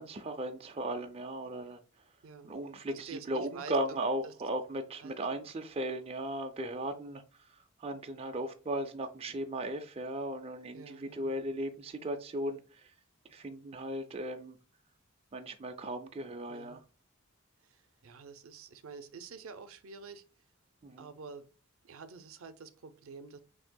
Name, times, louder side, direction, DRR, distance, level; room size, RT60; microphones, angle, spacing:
voice 1, 0.0-1.8 2.4-12.9 13.3-14.6 15.3-16.8 20.8-21.1, right 1 dB, 30° right, 0.4 m, -37 dB
voice 2, 2.9-4.0 4.2-4.3 5.0-5.2 10.7-11.3 16.5-16.8 17.6-20.2 21.0-21.5 21.8-23.4, right 5 dB, 75° right, 0.5 m, -48 dB
6.2 x 2.7 x 2.2 m
head